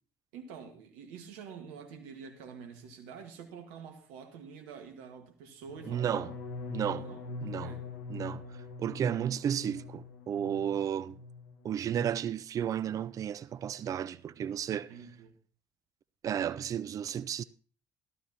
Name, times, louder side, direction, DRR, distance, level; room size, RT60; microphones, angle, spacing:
voice 1, 0.3-6.3 7.0-7.9 14.7-15.4, right 6 dB, 75° right, 1.6 m, -47 dB
sound 1, 5.6-11.6 11.9-12.4 12.6-13.0, left 4 dB, 80° left, 1.6 m, -44 dB
voice 2, 5.9-6.3 6.7-7.1 7.4-7.7 8.1-8.4 8.8-11.2 11.6-14.9 16.2-17.4, right 9 dB, 45° right, 0.4 m, -33 dB
14.5 x 12.5 x 2.9 m
hypercardioid pair, 60°, 8 cm